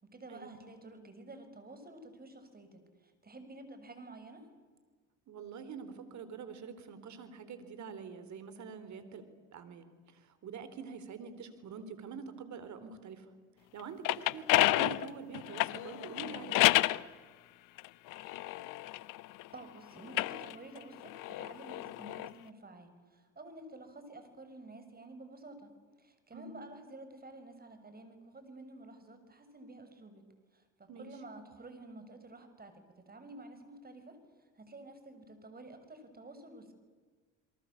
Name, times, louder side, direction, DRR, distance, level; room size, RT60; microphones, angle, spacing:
voice 1, 0.0-4.4 19.5-25.7 26.0-30.3 30.5-36.7, right 2 dB, 25° right, 9 dB, 6.2 m, -51 dB
voice 2, 5.3-9.2 9.5-13.3 13.7-16.6 26.3-26.6 30.9-31.1, right 6 dB, 55° right, 11 dB, 4.0 m, -46 dB
sound 1, 13.8-17.0 17.8-19.5 20.0-22.3, left 18 dB, 60° left, 0.9 m, -30 dB
28.5 x 23.0 x 8.6 m, 1.5 s
hypercardioid pair, 70°, 35 cm